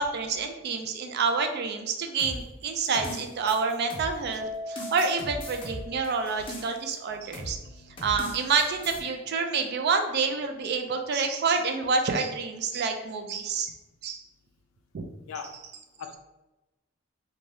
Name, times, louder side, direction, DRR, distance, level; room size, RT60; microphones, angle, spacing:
voice 1, 0.0-7.6 8.0-13.7 14.0-14.2 14.9-15.1, right 4 dB, 55° right, 5 dB, 0.4 m, -28 dB
sound 1, 2.2-4.3 4.8-6.9 7.3-7.6 8.0-9.0, equal, 25° left, 0.6 m, -39 dB
Keyboard (musical), 4.4-6.9, left 1 dB, 90° right, 0.6 m, -40 dB
voice 2, 7.5-8.2 15.3-15.6 16.0-16.2, left 6 dB, 90° left, 6 dB, 0.4 m, -42 dB
2.6 x 2.2 x 3.2 m, 1.0 s
head